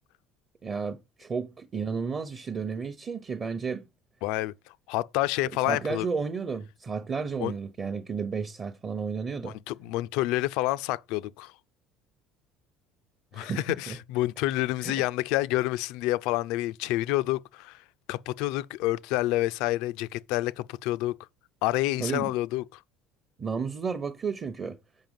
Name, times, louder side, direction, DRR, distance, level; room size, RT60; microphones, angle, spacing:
voice 1, 0.6-3.8 5.7-9.6 13.3-14.0 14.8-15.0 22.0-22.3 23.4-24.8, right 5 dB, 30° right, 0.8 m, -32 dB
voice 2, 4.2-4.5 4.9-6.1 7.4-7.5 9.4-11.5 13.3-17.8 18.1-21.2 21.6-22.8, left 17 dB, 80° left, 0.5 m, -28 dB
7.4 x 5.7 x 5.2 m
cardioid pair, 135°, 0 cm